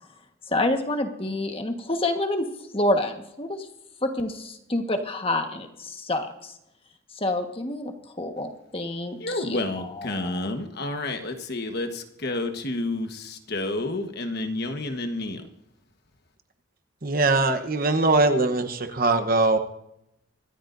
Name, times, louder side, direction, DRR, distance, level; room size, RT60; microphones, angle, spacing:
voice 1, 0.5-2.5 2.7-3.6 4.0-6.3 7.2-7.9 8.2-10.5, left 1 dB, 25° left, 5 dB, 1.4 m, -28 dB
voice 2, 9.2-15.4, left 2 dB, 50° left, 6 dB, 1.4 m, -30 dB
voice 3, 17.0-19.6, right 3 dB, 45° right, 8 dB, 1.0 m, -21 dB
25.0 x 13.5 x 2.7 m, 0.83 s
head